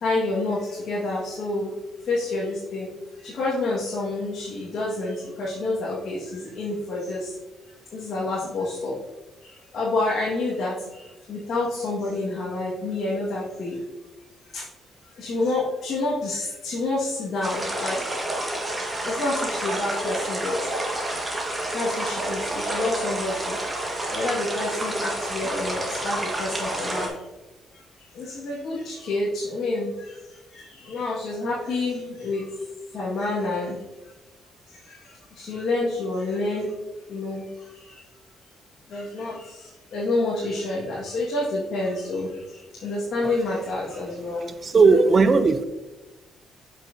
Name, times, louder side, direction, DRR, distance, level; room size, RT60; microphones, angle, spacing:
voice 1, 0.0-1.7 2.1-2.9 3.2-7.3 7.9-8.9 9.7-11.0 11.3-13.8 14.5-14.6 15.2-18.0 19.0-20.6 21.7-23.6 24.1-27.1 28.2-29.9 30.5-32.5 32.9-33.8 34.9-35.0 35.4-36.7 37.1-37.5 38.9-42.3 42.8-44.4, left 2 dB, 65° left, -6 dB, 1.8 m, -28 dB
sound 1, 17.4-27.1, right 1 dB, 20° right, 1.7 m, -29 dB
voice 2, 44.6-45.6, right 4 dB, 40° right, 11 dB, 0.5 m, -17 dB
7.5 x 5.8 x 2.8 m, 1.1 s
cardioid pair, 90°, 0 cm